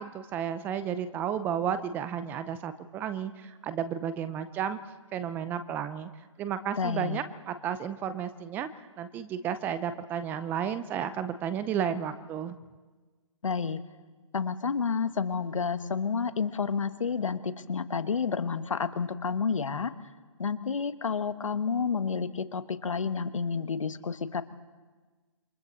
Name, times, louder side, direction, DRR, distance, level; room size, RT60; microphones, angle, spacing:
voice 1, 0.0-4.8 5.1-6.1 6.4-12.6, right 8 dB, 10° right, 12 dB, 0.5 m, -32 dB
voice 2, 6.8-7.2 13.4-13.8 14.3-19.9 20.4-24.4, left 5 dB, 80° left, 11 dB, 1.6 m, -30 dB
28.0 x 26.0 x 4.0 m, 1.3 s
hypercardioid pair, 155°, 16 cm